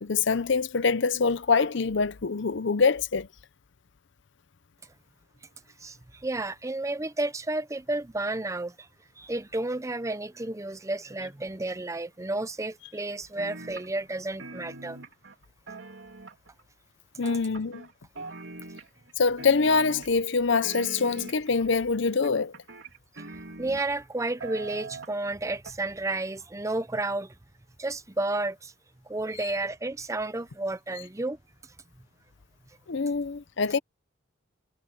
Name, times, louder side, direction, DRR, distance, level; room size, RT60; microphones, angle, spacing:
voice 1, 0.0-3.3 17.2-17.9 19.2-22.5 32.9-33.8, left 4 dB, 60° left, 0.6 m, -25 dB
voice 2, 5.8-8.9 9.2-15.0 23.3-27.3 27.8-28.7 29.1-31.4, right 2 dB, 15° right, 0.6 m, -32 dB
sound 1, 13.4-14.1 14.4-16.6 17.2-17.9 18.2-19.1 19.4-20.3 20.6-21.6 22.2-24.1 24.4-25.3 25.7-25.8, right 3 dB, 65° right, 2.8 m, -42 dB
head